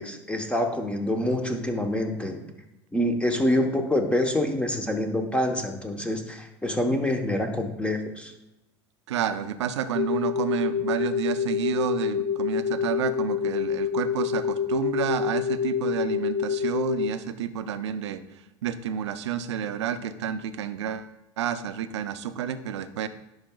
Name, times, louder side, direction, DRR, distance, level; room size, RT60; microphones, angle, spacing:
voice 1, 0.0-2.4 2.9-8.3, left 1 dB, 10° left, 5 dB, 0.9 m, -26 dB
voice 2, 9.1-18.2 18.6-21.1 21.4-23.1, right 9 dB, 85° right, 11 dB, 0.5 m, -30 dB
sound 1, 10.0-17.1, left 8 dB, 40° left, 0.4 m, -27 dB
10.5 x 4.8 x 2.3 m, 0.94 s
hypercardioid pair, 85°, 14 cm